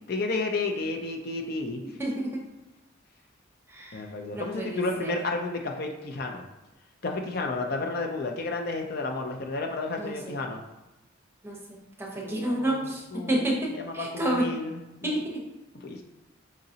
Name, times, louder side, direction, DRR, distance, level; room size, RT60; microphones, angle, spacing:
voice 1, 0.1-1.8 3.9-6.4 7.0-10.6 12.2-15.2 15.8-16.0, left 3 dB, 50° left, 3 dB, 0.4 m, -32 dB
voice 2, 1.8-2.4 3.7-4.0 4.3-5.2 10.0-10.4 11.4-13.7 13.9-14.4 15.0-15.4, right 1 dB, 10° right, -3 dB, 0.8 m, -30 dB
4.9 x 3.8 x 2.8 m, 1.0 s
head